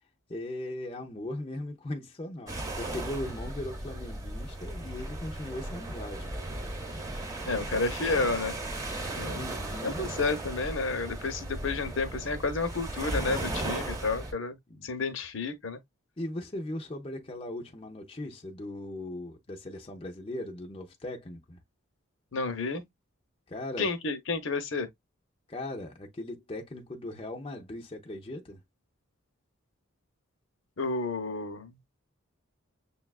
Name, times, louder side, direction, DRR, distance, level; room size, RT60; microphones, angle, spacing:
voice 1, 0.3-6.3 9.3-10.1 14.7-14.9 16.2-21.6 23.5-23.9 25.5-28.6, left 1 dB, 25° left, 0.5 m, -38 dB
sound 1, 2.5-14.3, right 1 dB, 15° right, 1.0 m, -36 dB
voice 2, 7.5-8.5 9.2-9.5 9.8-14.6 14.8-15.8 22.3-22.8 23.8-24.9 30.8-31.7, left 3 dB, 65° left, 0.8 m, -31 dB
6.8 x 2.3 x 2.3 m
head